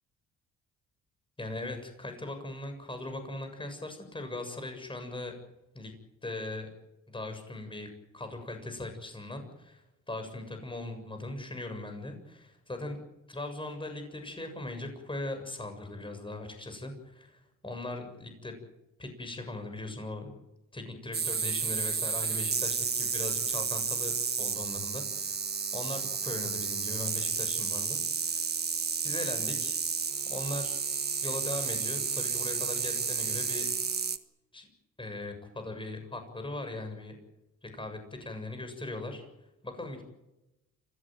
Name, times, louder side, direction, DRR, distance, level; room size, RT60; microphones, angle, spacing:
voice 1, 1.4-5.4 5.7-5.9 6.2-6.7 7.1-7.9 8.1-13.0 13.3-18.5 19.0-20.4 20.7-25.5 25.7-28.5 29.0-29.8 30.3-30.8 31.2-33.7 34.5-34.7 35.0-37.2 37.6-39.2 39.6-40.0, left 2 dB, 15° left, 6 dB, 7.2 m, -39 dB
sound 1, 21.1-34.2, right 5 dB, 35° right, 1.5 m, -31 dB
26.5 x 16.0 x 9.4 m, 0.95 s
cardioid pair, 90°, 30 cm